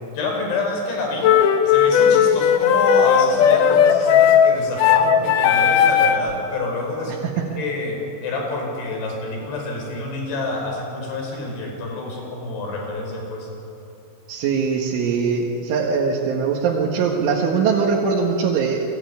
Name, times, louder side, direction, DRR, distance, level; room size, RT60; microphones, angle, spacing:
voice 1, 0.2-1.4 1.7-13.5, left 2 dB, 65° left, 2 dB, 7.2 m, -28 dB
sound 1, 1.2-6.3, left 8 dB, 80° left, 1.8 m, -16 dB
voice 2, 14.3-18.9, right 5 dB, 85° right, -2 dB, 4.2 m, -21 dB
29.0 x 21.5 x 9.6 m, 2.9 s
omnidirectional pair, 5.4 m